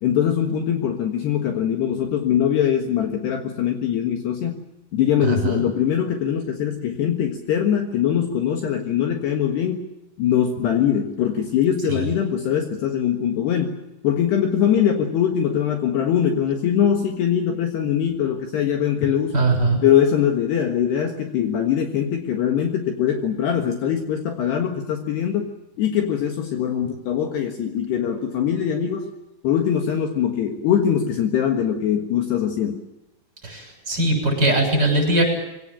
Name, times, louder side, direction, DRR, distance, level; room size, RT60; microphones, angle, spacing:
voice 1, 0.0-4.6 4.9-9.9 10.2-13.8 14.0-19.4 19.8-25.5 25.8-29.1 29.4-32.8, left 9 dB, 65° left, 4 dB, 3.3 m, -22 dB
voice 2, 5.2-5.6 11.9-12.0 19.3-19.8 33.4-35.2, right 2 dB, 20° right, 2 dB, 7.1 m, -20 dB
23.0 x 17.5 x 10.0 m, 0.95 s
omnidirectional pair, 5.6 m